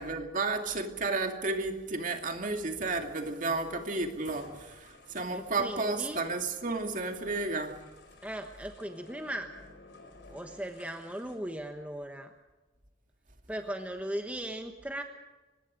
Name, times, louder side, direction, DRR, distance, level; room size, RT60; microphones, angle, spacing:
voice 1, 0.0-7.8, right 3 dB, 45° right, 5 dB, 2.5 m, -32 dB
sound 1, 4.2-11.4, left 3 dB, 65° left, 4.7 m, -54 dB
voice 2, 5.3-6.2 8.2-9.5 10.3-12.3 13.5-15.0, right 1 dB, 5° right, 5 dB, 1.1 m, -38 dB
24.5 x 20.5 x 5.2 m, 1.2 s
head